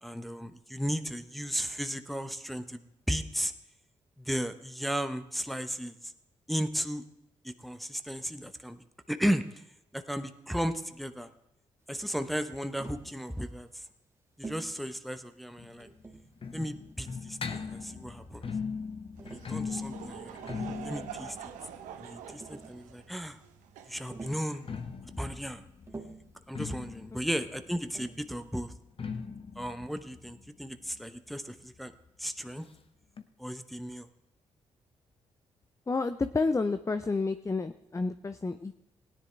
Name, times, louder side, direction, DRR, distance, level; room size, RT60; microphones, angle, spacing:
voice 1, 0.0-3.5 4.2-6.1 6.5-7.0 7.4-9.6 9.9-11.3 11.9-13.8 14.4-15.9 16.5-18.5 19.3-21.4 22.0-23.4 23.9-24.7 25.2-25.6 26.5-28.7 29.6-31.9 32.2-32.7 33.4-34.1, equal, ahead, 8 dB, 0.9 m, -35 dB
Tap, 12.8-13.1 14.4-14.7 15.8-16.4 17.4-18.2 19.2-19.5 20.2-20.8 21.9-22.0 22.3-22.8 24.1-24.5 25.9-26.3 27.9-28.3, right 3 dB, 20° right, 1.7 m, -46 dB
sound 1, 15.6-23.3 24.4-31.8 32.1-32.2 32.4-32.5 33.2-33.3, left 5 dB, 45° left, 1.0 m, -40 dB
Laughter / Crowd, 19.1-24.9, right 9 dB, 85° right, 0.8 m, -46 dB
voice 2, 35.9-38.8, left 3 dB, 25° left, 10 dB, 0.6 m, -30 dB
17.0 x 10.0 x 3.3 m, 0.84 s
supercardioid pair, 45°, 13 cm